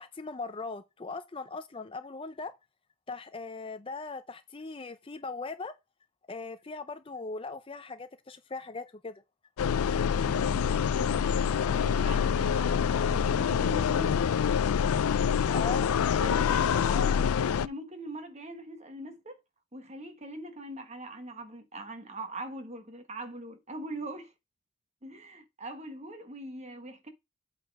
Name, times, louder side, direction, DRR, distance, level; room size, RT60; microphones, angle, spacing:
voice 1, 0.0-2.5 3.1-5.8 6.3-9.2 15.5-15.9 16.7-17.1, left 4 dB, 25° left, 0.5 m, -39 dB
sound 1, 9.6-17.7, left 7 dB, 90° left, 0.4 m, -26 dB
voice 2, 10.2-14.5 15.2-15.5 16.2-17.1 17.5-19.4 19.7-24.3 25.0-27.1, right 1 dB, 30° right, 1.4 m, -42 dB
8.1 x 4.1 x 4.7 m
head